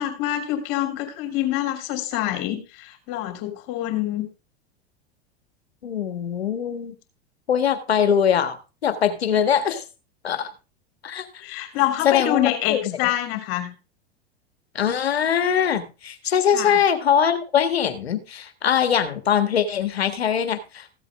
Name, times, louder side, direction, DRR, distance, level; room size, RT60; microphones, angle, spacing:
voice 1, 0.0-4.2 11.4-13.7 16.5-16.8, left 13 dB, 55° left, 5 dB, 3.2 m, -26 dB
voice 2, 5.8-6.9 7.5-8.6 8.8-9.8 10.2-10.5 11.0-11.4 12.0-13.0 14.7-20.9, left 8 dB, 85° left, 10 dB, 1.7 m, -22 dB
15.0 x 8.1 x 3.6 m, 0.30 s
hypercardioid pair, 95°, 30 cm